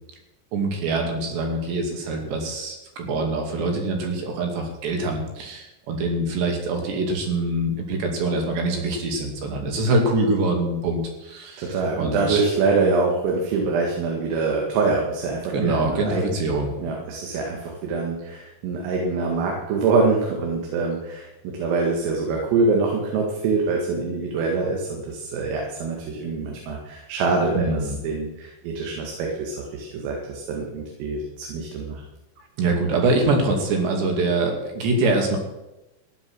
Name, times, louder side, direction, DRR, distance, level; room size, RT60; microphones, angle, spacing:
voice 1, 0.5-11.7 12.0-12.5 15.5-16.7 27.5-28.0 32.6-35.4, right 2 dB, 60° right, 2 dB, 4.4 m, -24 dB
voice 2, 11.6-16.2 16.8-21.3 21.6-32.0, right 4 dB, 85° right, 0 dB, 4.7 m, -24 dB
15.5 x 11.0 x 6.2 m, 0.97 s
omnidirectional pair, 5.8 m